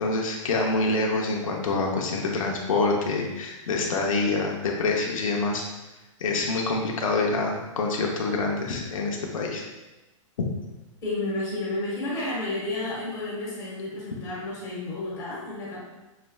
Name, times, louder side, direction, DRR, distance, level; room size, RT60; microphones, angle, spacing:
voice 1, 0.0-5.6 6.2-9.6, left 3 dB, 85° left, 0 dB, 0.8 m, -26 dB
voice 2, 11.0-15.8, left 2 dB, 20° left, -6 dB, 1.5 m, -31 dB
5.7 x 3.2 x 2.3 m, 1.1 s
hypercardioid pair, 155°, 17 cm